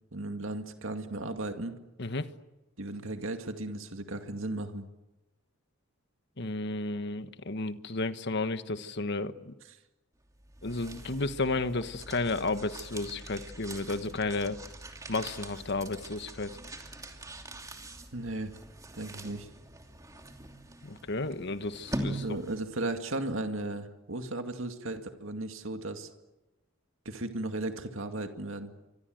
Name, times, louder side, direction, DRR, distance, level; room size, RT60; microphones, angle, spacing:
voice 1, 0.1-1.7 2.8-4.8 18.1-18.5 18.9-19.5 22.1-26.1 27.1-28.7, right 2 dB, 65° right, 6 dB, 2.2 m, -35 dB
voice 2, 2.0-2.3 6.4-9.5 10.6-14.6 15.1-16.5 20.8-22.2, left 3 dB, 55° left, 11 dB, 1.4 m, -32 dB
sound 1, 10.3-22.8, right 1 dB, 15° right, 2.8 m, -43 dB
28.0 x 25.0 x 7.9 m, 1.0 s
head